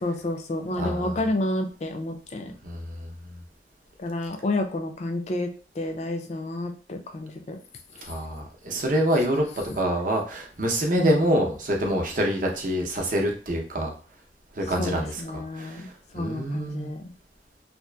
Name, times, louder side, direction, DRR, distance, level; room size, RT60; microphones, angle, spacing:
voice 1, 0.0-2.5 4.0-5.5 5.8-7.6 8.7-8.8 11.0-11.4 14.8-15.9 16.1-17.1, left 1 dB, 40° left, 5 dB, 0.3 m, -30 dB
voice 2, 0.8-1.1 2.6-3.1 8.1-9.5 9.7-13.9 14.6-15.8 16.1-16.9, equal, 45° right, 1 dB, 0.6 m, -26 dB
2.7 x 2.4 x 2.2 m, 0.39 s
head